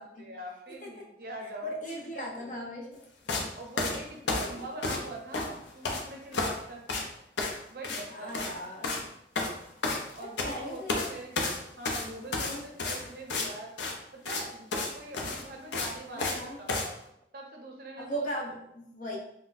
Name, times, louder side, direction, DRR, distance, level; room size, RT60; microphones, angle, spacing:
voice 1, 0.0-2.5 3.5-6.8 7.7-8.5 10.2-13.7 14.1-16.9 17.3-18.3, right 2 dB, 55° right, 1 dB, 0.5 m, -43 dB
voice 2, 1.6-3.0 4.2-4.6 8.1-9.0 10.2-11.1 12.3-12.6 16.1-16.6 18.0-19.2, equal, 45° left, -2 dB, 0.7 m, -38 dB
sound 1, 3.3-3.5 3.8-5.1 5.3-6.0 6.3-6.6 6.9-7.1 7.4-7.6 7.8-8.0 8.3-8.5 8.8-9.0 9.4-10.5 10.9-11.1 11.4-13.5 13.8-13.9 14.3-14.4 14.7-14.9 15.1-16.4 16.7-16.9, left 3 dB, 85° left, 0.5 m, -31 dB
4.0 x 2.1 x 2.5 m, 0.79 s
head